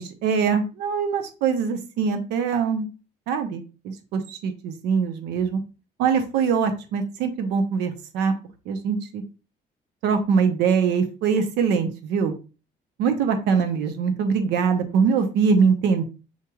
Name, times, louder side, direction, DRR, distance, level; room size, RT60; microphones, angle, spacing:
voice 1, 0.0-2.9 3.3-5.6 6.0-8.3 8.7-9.2 10.0-12.3 13.0-16.0, right 6 dB, 85° right, 6 dB, 0.7 m, -23 dB
7.1 x 3.0 x 2.3 m, 0.33 s
cardioid pair, 110°, 17 cm